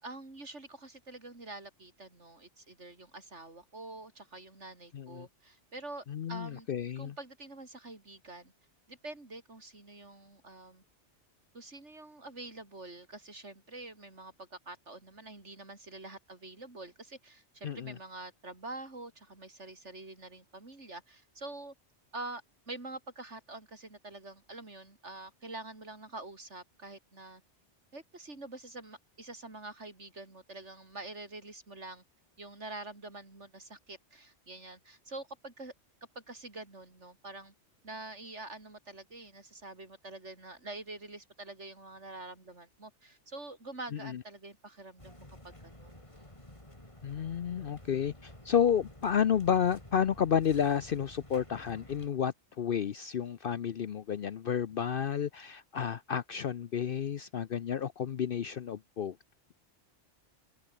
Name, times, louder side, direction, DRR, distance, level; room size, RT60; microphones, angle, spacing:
voice 1, 0.0-6.7 7.0-8.5 8.9-10.8 11.5-21.7 22.1-27.4 27.9-32.0 32.4-35.7 36.1-37.5 37.8-46.0, right 2 dB, 80° right, 4.8 m, -46 dB
voice 2, 4.9-5.3 6.1-7.1 17.6-17.9 44.0-44.2 47.0-59.2, left 8 dB, 55° left, 0.8 m, -31 dB
sound 1, 45.0-52.1, left 1 dB, 25° left, 4.6 m, -52 dB
open air
omnidirectional pair, 1.2 m